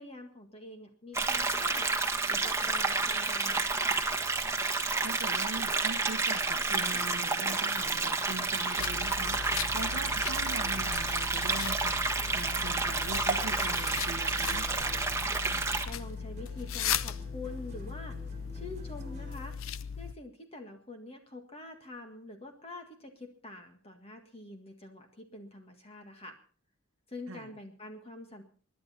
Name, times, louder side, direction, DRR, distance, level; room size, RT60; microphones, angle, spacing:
voice 1, 0.0-4.0 15.3-19.6 20.0-26.4 27.1-28.4, left 2 dB, 30° left, 5 dB, 1.8 m, -46 dB
sound 1, 1.1-15.9, right 3 dB, 15° right, 1.4 m, -30 dB
voice 2, 5.0-14.7 27.3-27.5, right 2 dB, 65° right, 2 dB, 1.0 m, -42 dB
sound 2, 6.4-19.6, right 2 dB, 35° right, 2.0 m, -51 dB
sound 3, 8.8-20.2, left 8 dB, 65° left, 0.6 m, -38 dB
26.0 x 11.0 x 4.3 m, 0.41 s
head